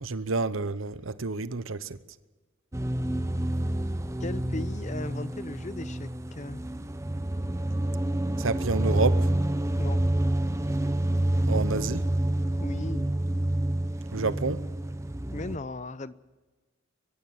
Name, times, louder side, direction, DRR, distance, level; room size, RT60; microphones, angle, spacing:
voice 1, 0.0-2.0 8.4-9.3 11.5-12.0 14.1-14.6, right 3 dB, 75° right, 0.9 m, -29 dB
sound 1, 2.7-15.6, right 1 dB, 15° right, 0.7 m, -28 dB
voice 2, 4.2-6.6 9.8-10.0 12.6-13.1 15.3-16.1, left 2 dB, 35° left, 0.7 m, -37 dB
23.5 x 15.5 x 7.2 m
head